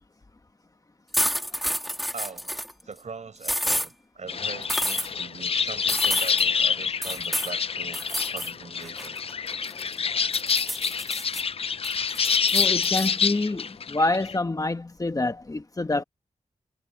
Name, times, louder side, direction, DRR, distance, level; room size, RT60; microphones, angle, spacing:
sound 1, 1.1-2.7 3.4-3.9 4.7-5.1 5.9-6.4 7.0-7.5 7.9-8.5 8.8-9.9 10.3-11.4 11.8-13.1, equal, ahead, 2.7 m, -29 dB
voice 1, 2.1-2.5 2.8-9.2, right 5 dB, 65° right, 6.9 m, -41 dB
sound 2, 4.3-14.4, left 6 dB, 50° left, 0.4 m, -27 dB
voice 2, 12.5-16.0, left 2 dB, 25° left, 1.2 m, -27 dB
wide cardioid pair, 115°, 13 cm